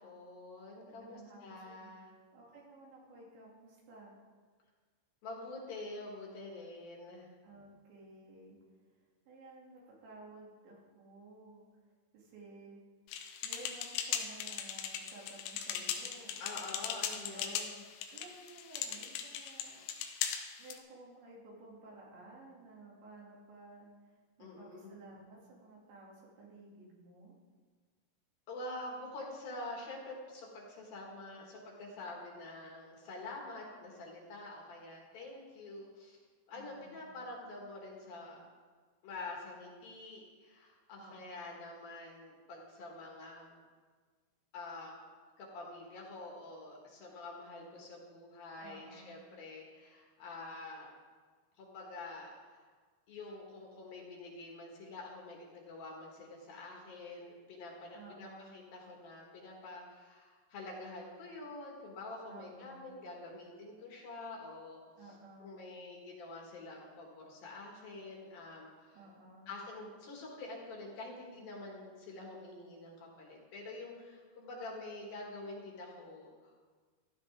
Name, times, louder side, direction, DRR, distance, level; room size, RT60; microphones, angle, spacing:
voice 1, 0.0-2.1 5.2-7.3 16.4-17.8 24.4-24.9 28.5-36.2 36.5-38.4 39.0-43.5 44.5-44.9 45.4-50.9 51.6-52.6 53.1-64.8 65.4-69.1 69.5-76.6, left 2 dB, 60° left, -1 dB, 3.3 m, -47 dB
voice 2, 0.9-1.9 2.3-4.2 7.4-8.6 9.3-11.6 12.1-12.8 13.4-16.4 17.0-17.6 18.1-19.8 20.6-24.1 24.4-27.4 36.5-37.1 41.0-41.5 48.6-49.2 57.9-58.5 62.3-62.8 65.0-65.6 68.9-69.5, right 2 dB, 80° right, -4 dB, 4.9 m, -54 dB
sound 1, 13.1-20.8, left 8 dB, 90° left, 3.2 m, -39 dB
15.5 x 12.5 x 3.7 m, 1.5 s
omnidirectional pair, 5.1 m